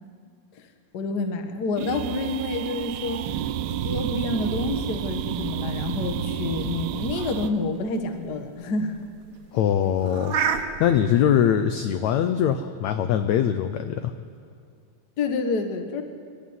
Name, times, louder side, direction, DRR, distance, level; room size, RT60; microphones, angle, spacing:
voice 1, 0.9-3.3 3.8-9.0 15.2-16.0, left 3 dB, 60° left, 6 dB, 1.0 m, -28 dB
sound 1, 1.8-7.5, right 9 dB, 80° right, 2.4 m, -30 dB
sound 2, 5.7-11.0, right 7 dB, 65° right, 2.2 m, -32 dB
voice 2, 9.5-10.4 10.8-14.1, left 9 dB, 85° left, 9 dB, 1.6 m, -22 dB
24.0 x 12.5 x 9.5 m, 2.2 s
omnidirectional pair, 4.1 m